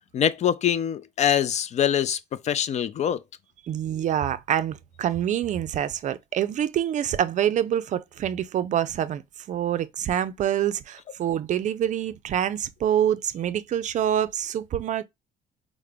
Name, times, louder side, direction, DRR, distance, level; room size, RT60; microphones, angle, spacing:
voice 1, 0.1-3.2, left 9 dB, 45° left, 0.4 m, -24 dB
voice 2, 3.7-9.2 9.5-15.0, right 10 dB, 45° right, 0.4 m, -26 dB
4.8 x 2.1 x 3.3 m
cardioid pair, 110°, 17 cm